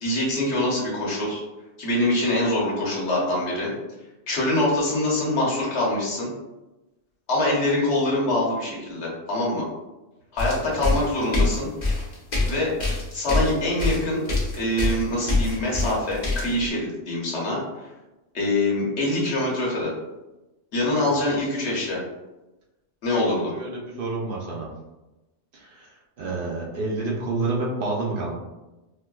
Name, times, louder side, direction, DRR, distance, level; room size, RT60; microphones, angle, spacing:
voice 1, 0.0-1.4 1.8-3.7 4.3-6.3 7.3-9.7 10.3-11.7 12.4-12.7 13.1-14.2 14.5-17.9 18.3-19.9 20.7-22.0 23.0-23.5, left 1 dB, 70° left, -4 dB, 1.2 m, -24 dB
sound 1, 10.4-16.7, left 2 dB, 45° left, 0.8 m, -25 dB
voice 2, 23.2-24.7 25.5-28.3, right 3 dB, 55° right, -3 dB, 0.7 m, -29 dB
4.4 x 2.1 x 2.3 m, 1.0 s
omnidirectional pair, 1.2 m